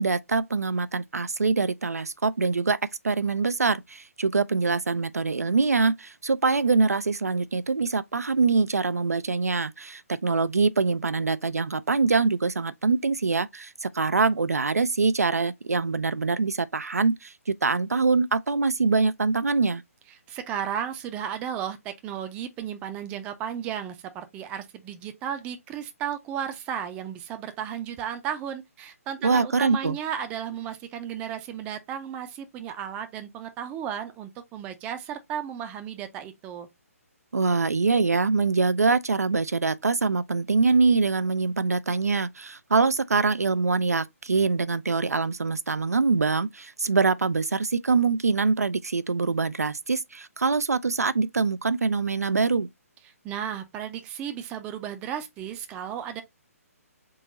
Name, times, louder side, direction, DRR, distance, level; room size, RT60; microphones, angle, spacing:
voice 1, 0.0-2.8 3.0-19.8 29.2-30.0 37.3-52.7, right 4 dB, 80° right, 0.4 m, -24 dB
voice 2, 20.3-36.7 53.2-56.2, right 9 dB, 15° right, 0.5 m, -34 dB
3.8 x 2.9 x 3.9 m
figure-of-eight pair, 135°, 8 cm